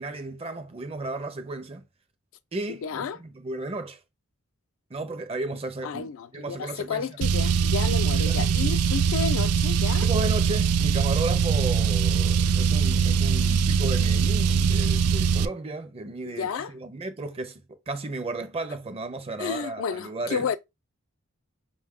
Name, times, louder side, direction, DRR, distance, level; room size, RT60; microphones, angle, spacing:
voice 1, 0.0-1.8 2.5-4.0 4.9-7.1 8.1-8.7 10.0-20.5, right 2 dB, 25° right, 0.5 m, -34 dB
voice 2, 2.8-3.2 5.8-10.1 16.3-16.7 19.4-20.6, left 6 dB, 65° left, 0.3 m, -31 dB
Car, 7.2-15.5, right 6 dB, 90° right, 0.3 m, -22 dB
5.2 x 2.2 x 3.5 m
head